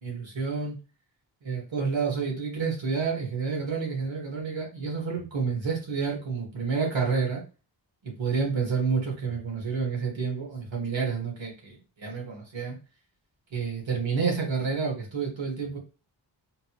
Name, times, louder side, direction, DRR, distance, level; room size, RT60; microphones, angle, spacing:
voice 1, 0.0-0.8 1.4-7.4 8.0-12.8 13.5-15.8, right 5 dB, 80° right, 0 dB, 1.5 m, -29 dB
3.8 x 2.4 x 2.9 m, 0.33 s
wide cardioid pair, 140°, 45 cm